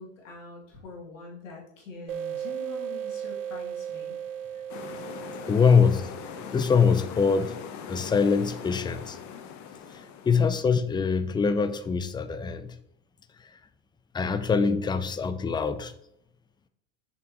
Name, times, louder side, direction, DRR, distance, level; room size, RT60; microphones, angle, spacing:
voice 1, 0.0-4.2, left 4 dB, 80° left, 2.4 m, -45 dB
sound 1, 2.1-7.4, right 9 dB, 85° right, 0.8 m, -37 dB
sound 2, 4.7-10.6, left 7 dB, 50° left, 0.9 m, -41 dB
voice 2, 5.5-6.1 6.5-7.6 7.9-9.2 9.9-12.8 14.1-15.9, left 5 dB, 10° left, 0.5 m, -24 dB
7.0 x 5.3 x 3.0 m
hypercardioid pair, 90°, 38 cm